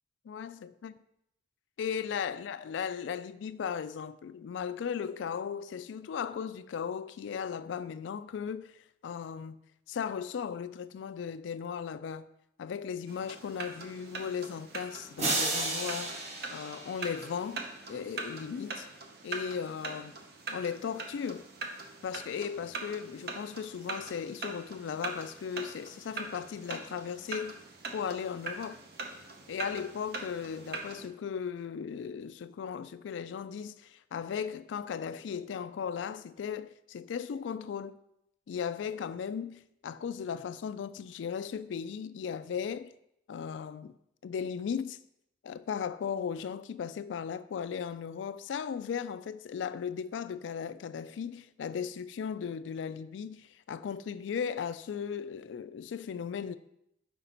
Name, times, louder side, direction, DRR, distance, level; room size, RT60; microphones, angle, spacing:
voice 1, 0.3-0.9 1.8-8.7 9.0-9.6 9.9-12.3 12.6-17.6 17.9-18.9 19.2-20.2 20.5-21.5 22.0-27.6 27.9-28.8 29.5-37.9 38.5-42.9 43.3-43.9 44.2-45.0 45.4-56.6, left 7 dB, 80° left, 0.3 m, -37 dB
sound 1, 13.1-31.1, right 3 dB, 60° right, 0.7 m, -42 dB
sound 2, 15.2-17.5, right 2 dB, 35° right, 1.0 m, -33 dB
5.8 x 5.1 x 3.8 m
head